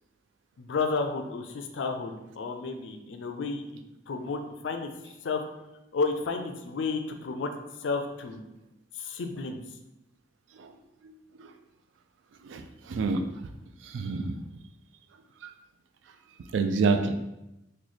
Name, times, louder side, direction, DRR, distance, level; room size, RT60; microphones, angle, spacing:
voice 1, 0.6-3.6 4.1-5.4 5.9-7.5 7.8-8.4 8.9-9.6, left 4 dB, 70° left, 6 dB, 0.4 m, -32 dB
voice 2, 12.4-13.3 13.8-14.4 16.5-17.1, right 4 dB, 75° right, 7 dB, 0.3 m, -27 dB
3.1 x 2.2 x 3.9 m, 0.93 s
head